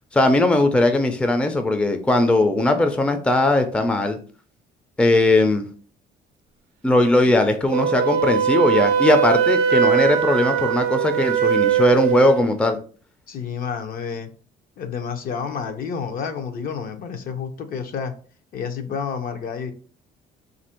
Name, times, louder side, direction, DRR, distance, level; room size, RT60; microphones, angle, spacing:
voice 1, 0.1-4.2 5.0-5.7 6.8-12.8, left 2 dB, 5° left, 6 dB, 0.4 m, -19 dB
Wind instrument woodwind instrument, 7.7-12.4, right 8 dB, 85° right, 0.4 m, -20 dB
voice 2, 13.3-14.3 14.8-18.1 18.5-19.7, left 6 dB, 60° left, 7 dB, 0.6 m, -30 dB
2.8 x 2.6 x 4.3 m, 0.40 s
cardioid pair, 110°, 17 cm